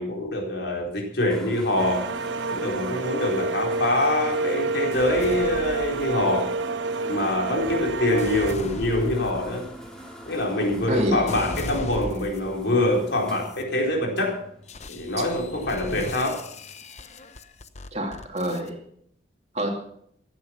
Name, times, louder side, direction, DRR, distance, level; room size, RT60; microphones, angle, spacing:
voice 1, 0.0-2.1 2.5-6.5 7.1-9.6 10.3-14.4 14.9-16.4, left 1 dB, 65° left, 0 dB, 4.4 m, -25 dB
sound 1, 1.3-16.8, equal, 5° left, 2.7 m, -44 dB
sound 2, 1.8-8.5, right 3 dB, 80° right, 0.6 m, -28 dB
sound 3, 4.9-6.5 7.2-12.7 13.2-13.6 14.7-18.7, left 2 dB, 35° left, 0.9 m, -39 dB
voice 2, 10.9-11.4 17.9-18.8 19.5-19.7, equal, 35° right, 2 dB, 2.5 m, -27 dB
15.5 x 11.0 x 5.9 m, 0.68 s
head